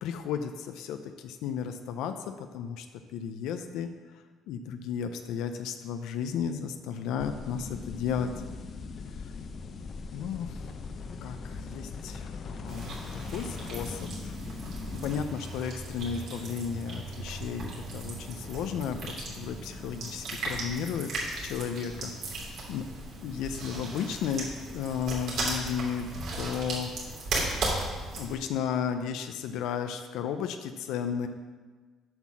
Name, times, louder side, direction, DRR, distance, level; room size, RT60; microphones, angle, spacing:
voice 1, 0.0-2.9 3.1-8.3 10.1-10.7 11.2-14.4 15.0-21.1 21.4-22.1 22.4-22.8 23.2-26.1 26.3-26.9 28.1-31.3, left 7 dB, 80° left, 7 dB, 0.5 m, -34 dB
sound 1, 7.2-15.2, left 4 dB, 45° left, 0.7 m, -40 dB
sound 2, 12.7-28.4, right 2 dB, 65° right, 2.7 m, -36 dB
8.0 x 5.7 x 6.1 m, 1.4 s
cardioid pair, 120°, 0 cm